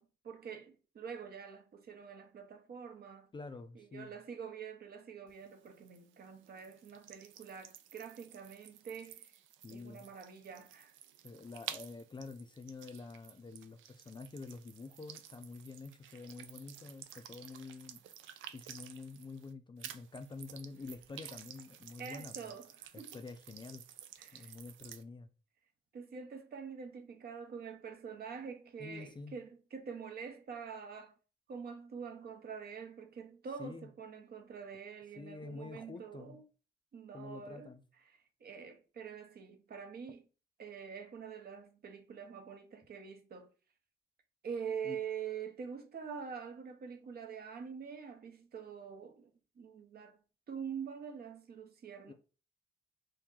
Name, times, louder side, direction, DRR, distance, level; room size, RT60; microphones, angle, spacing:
voice 1, 0.0-3.3 3.8-9.3 9.7-10.9 22.0-23.2 24.2-24.5 25.9-31.1 31.5-36.4 36.9-37.7 38.1-40.2 40.6-43.5 44.4-49.3 49.6-50.2 50.5-52.1, right 6 dB, 50° right, 0.8 m, -45 dB
voice 2, 3.3-4.1 9.6-10.1 11.2-18.0 18.5-22.5 22.9-23.8 24.3-25.3 28.8-29.4 33.6-33.9 35.2-36.4 37.1-37.8 44.8-45.0 52.1-52.2, left 4 dB, 25° left, 0.4 m, -48 dB
sound 1, 5.3-19.5 19.8-25.0, right 10 dB, 75° right, 0.4 m, -52 dB
2.9 x 2.6 x 3.7 m
cardioid pair, 90°, 20 cm